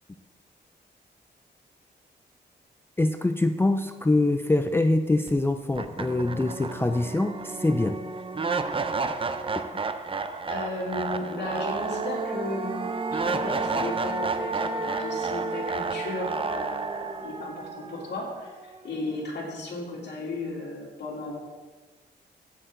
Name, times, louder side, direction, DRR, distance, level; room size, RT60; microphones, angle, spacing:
voice 1, 3.0-8.0, left 2 dB, 15° left, 7 dB, 0.4 m, -24 dB
sound 1, 5.3-5.4 5.7-18.8, right 4 dB, 30° right, 0.6 m, -31 dB
voice 2, 10.5-21.4, left 2 dB, 70° left, -4 dB, 2.9 m, -35 dB
15.5 x 6.5 x 3.8 m, 1.3 s
wide cardioid pair, 120°, 18 cm